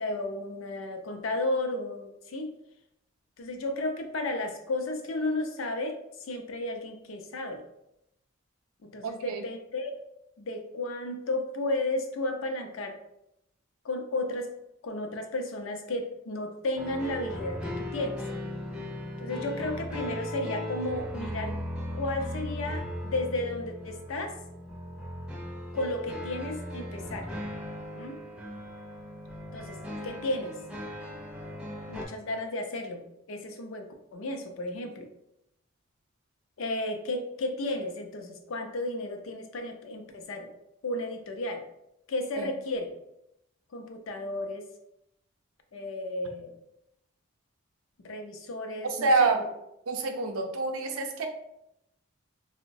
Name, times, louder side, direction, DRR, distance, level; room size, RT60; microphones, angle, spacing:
voice 1, 0.0-2.5 3.4-7.6 8.8-9.9 10.4-13.0 13.8-14.5 14.8-18.2 19.2-21.6 22.0-24.4 25.7-27.3 28.0-28.2 29.5-29.8 30.0-30.6 31.9-33.0 33.3-35.1 36.6-40.5 40.8-41.6 42.1-42.9 43.7-44.6 45.7-46.5 48.0-49.5, left 2 dB, 70° left, 5 dB, 0.5 m, -33 dB
voice 2, 9.0-9.4 42.4-42.5 48.8-49.4 49.9-51.3, right 3 dB, 85° right, 4 dB, 0.5 m, -27 dB
sound 1, 16.8-32.1, equal, 5° right, 0.4 m, -37 dB
3.7 x 2.1 x 2.6 m, 0.82 s
head